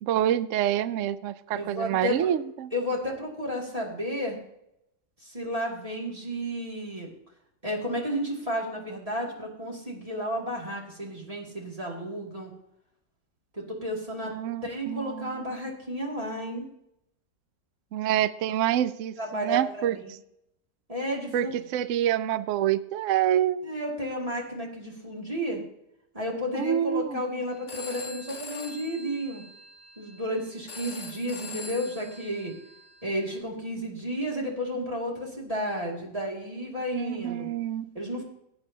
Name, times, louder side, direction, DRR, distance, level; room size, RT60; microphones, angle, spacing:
voice 1, 0.0-2.7 14.3-15.4 17.9-20.2 21.3-23.6 26.5-27.2 36.9-37.9, right 11 dB, 75° right, 14 dB, 0.7 m, -27 dB
voice 2, 1.5-2.3 2.7-4.4 5.2-7.1 7.6-12.5 13.5-14.3 14.6-16.6 19.2-20.0 20.9-21.5 23.6-25.6 26.1-29.4 30.0-32.5 33.0-37.5 37.9-38.3, equal, 20° right, -3 dB, 2.5 m, -32 dB
Telephone, 27.5-33.4, left 2 dB, 45° left, 1.5 m, -44 dB
17.5 x 8.8 x 2.8 m, 0.80 s
omnidirectional pair, 1.8 m